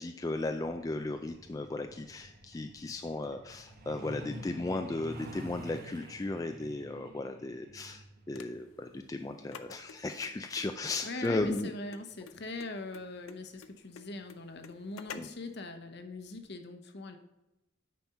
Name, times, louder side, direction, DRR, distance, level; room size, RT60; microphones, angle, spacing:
voice 1, 0.0-11.7 15.1-15.3, left 2 dB, 15° left, 6 dB, 0.3 m, -36 dB
Truck, 0.6-12.9 14.2-14.3 14.7-14.9 15.3-15.6 15.9-16.0 16.5-16.6, equal, 45° right, 1.1 m, -50 dB
sound 1, 8.3-15.5, left 6 dB, 85° left, 0.6 m, -50 dB
voice 2, 11.0-17.2, left 2 dB, 55° left, 7 dB, 0.9 m, -42 dB
9.3 x 4.3 x 5.5 m, 0.96 s
head